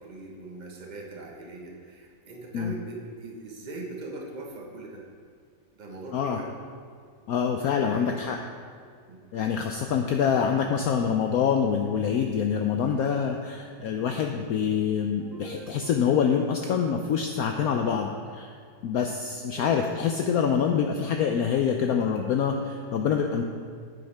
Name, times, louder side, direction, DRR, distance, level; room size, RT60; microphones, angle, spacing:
voice 1, 0.0-5.0 5.8-6.5 7.8-8.2 9.1-9.2 19.5-19.8, right 2 dB, 25° right, -1 dB, 1.1 m, -40 dB
voice 2, 7.3-8.4 9.3-18.5 18.8-23.4, left 7 dB, 75° left, 3 dB, 0.8 m, -25 dB
sound 1, 15.2-18.1, right 1 dB, 55° right, 2.8 m, -46 dB
10.5 x 8.5 x 3.4 m, 2.2 s
omnidirectional pair, 2.1 m